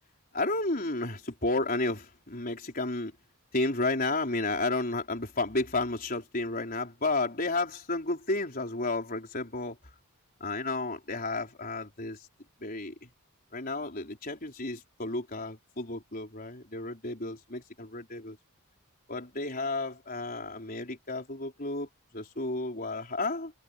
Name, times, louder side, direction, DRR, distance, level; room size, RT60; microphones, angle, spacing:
voice 1, 0.3-3.1 3.5-9.8 10.4-12.2 12.6-13.1 13.5-18.4 19.1-21.9 22.1-23.5, left 2 dB, 40° left, 4.6 m, -32 dB
head